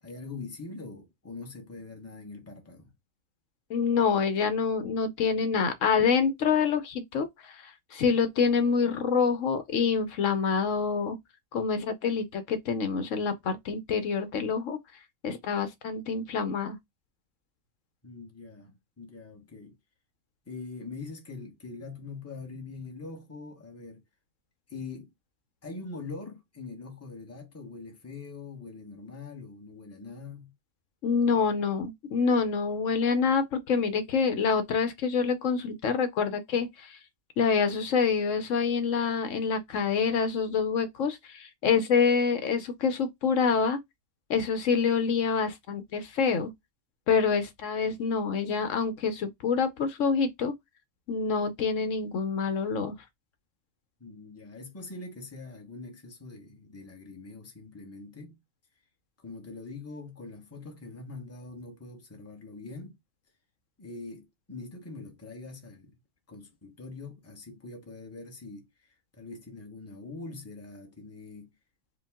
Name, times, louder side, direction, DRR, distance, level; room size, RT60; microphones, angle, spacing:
voice 1, 0.0-2.9 18.0-19.8 20.5-24.0 24.7-25.1 25.6-30.5 54.0-58.4 59.2-63.0 63.8-66.0 66.3-71.5, left 3 dB, 10° left, 0.9 m, -43 dB
voice 2, 3.7-11.2 11.5-14.8 15.2-16.8 31.0-37.0 37.4-43.8 44.3-46.5 47.1-50.5 51.1-52.9, left 5 dB, 70° left, 1.1 m, -26 dB
5.0 x 2.3 x 3.5 m
omnidirectional pair, 1.4 m